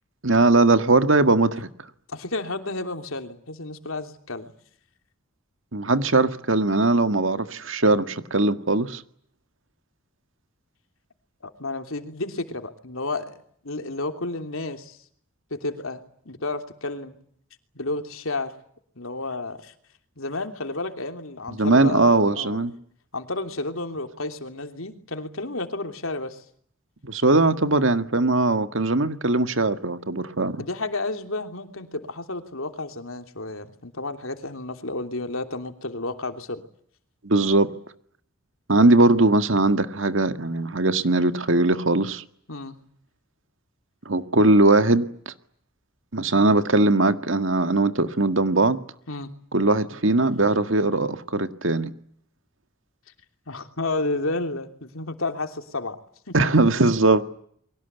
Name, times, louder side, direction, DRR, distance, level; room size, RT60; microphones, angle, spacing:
voice 1, 0.2-1.7 5.7-9.0 21.6-22.7 27.0-30.6 37.2-37.7 38.7-42.2 44.1-45.3 46.1-48.8 49.5-51.9 56.3-57.3, right 2 dB, 70° right, 1.9 m, -20 dB
voice 2, 2.1-4.5 11.4-13.3 13.6-15.0 15.5-17.1 17.7-18.5 18.9-19.7 20.2-22.6 23.1-26.4 30.6-36.6 42.5-42.8 49.1-49.3 53.5-56.0 56.3-56.4, left 2 dB, 80° left, 3.1 m, -31 dB
29.5 x 23.5 x 8.2 m
head